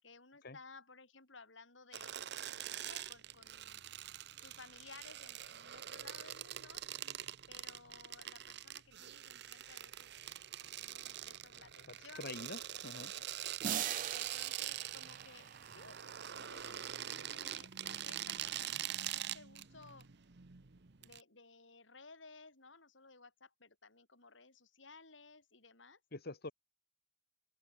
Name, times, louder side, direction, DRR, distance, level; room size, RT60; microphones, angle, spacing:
voice 1, 0.0-2.2 2.7-3.8 4.4-6.9 7.5-12.3 12.7-12.9 13.1-13.6 14.1-16.0 16.4-16.8 17.3-20.1 21.0-26.0, left 4 dB, 70° left, 5.4 m, -58 dB
sound 1, 1.9-21.2, right 11 dB, 60° right, 1.0 m, -44 dB
voice 2, 11.9-13.1 26.1-26.5, left 2 dB, 55° left, 1.9 m, -46 dB
sound 2, 13.6-16.4, right 10 dB, 45° right, 0.3 m, -42 dB
open air
head